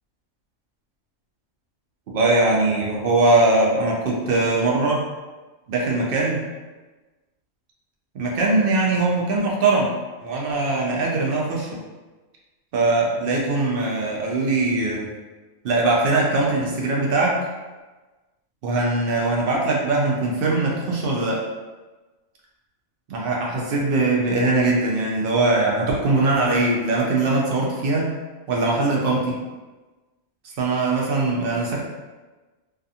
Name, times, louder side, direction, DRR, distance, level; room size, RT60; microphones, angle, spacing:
voice 1, 2.1-5.0 5.7-6.4 8.1-9.9 10.2-11.7 12.7-15.1 15.6-17.4 18.6-21.4 23.1-28.1 28.5-29.3 30.6-31.8, right 2 dB, 60° right, -2 dB, 0.6 m, -21 dB
2.4 x 2.4 x 2.7 m, 1.2 s
omnidirectional pair, 1.4 m